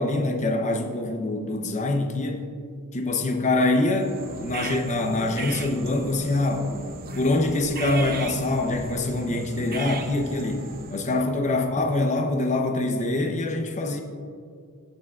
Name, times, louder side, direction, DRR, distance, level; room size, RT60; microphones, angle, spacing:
voice 1, 0.0-2.4 2.9-14.0, left 2 dB, 30° left, 3 dB, 0.7 m, -25 dB
sound 1, 3.9-11.2, right 3 dB, 40° right, 0.7 m, -37 dB
19.0 x 6.7 x 2.4 m, 2.2 s
head